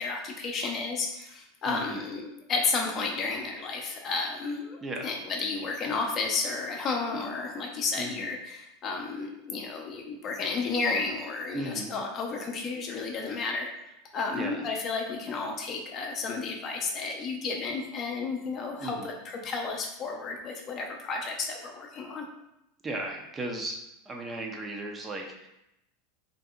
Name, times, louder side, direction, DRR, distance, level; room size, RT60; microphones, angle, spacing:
voice 1, 0.0-13.7 14.1-22.3, left 4 dB, 40° left, 2 dB, 0.5 m, -32 dB
voice 2, 1.7-2.0 4.8-5.2 8.0-8.3 11.5-11.9 14.3-14.7 18.8-19.1 22.8-23.8 24.1-25.5, right 2 dB, 20° right, 1 dB, 0.4 m, -36 dB
2.7 x 2.6 x 2.3 m, 0.85 s
hypercardioid pair, 85°, 0 cm